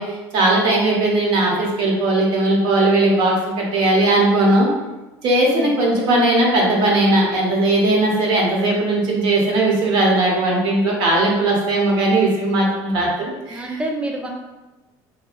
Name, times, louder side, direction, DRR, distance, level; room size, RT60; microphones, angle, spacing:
voice 1, 0.0-4.7 5.2-13.8, right 2 dB, 55° right, -2 dB, 0.8 m, -18 dB
voice 2, 13.5-14.3, right 2 dB, 10° right, 0 dB, 0.4 m, -27 dB
2.7 x 2.3 x 2.4 m, 1.1 s
cardioid pair, 130°, 9 cm